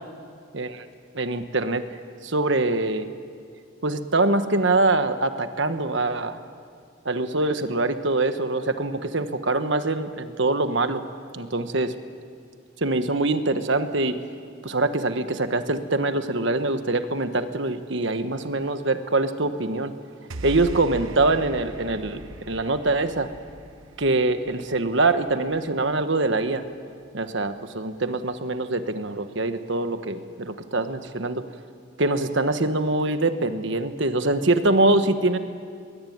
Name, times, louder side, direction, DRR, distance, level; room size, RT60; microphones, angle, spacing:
voice 1, 1.1-1.8 2.2-3.1 3.8-6.4 7.0-11.0 11.3-11.9 12.8-14.1 14.6-19.9 20.4-23.3 24.0-26.6 27.1-31.4 32.0-35.4, right 2 dB, 60° right, 9 dB, 1.4 m, -24 dB
sound 1, 20.3-26.7, right 2 dB, 75° right, 1.1 m, -40 dB
22.0 x 21.0 x 9.5 m, 2.3 s
head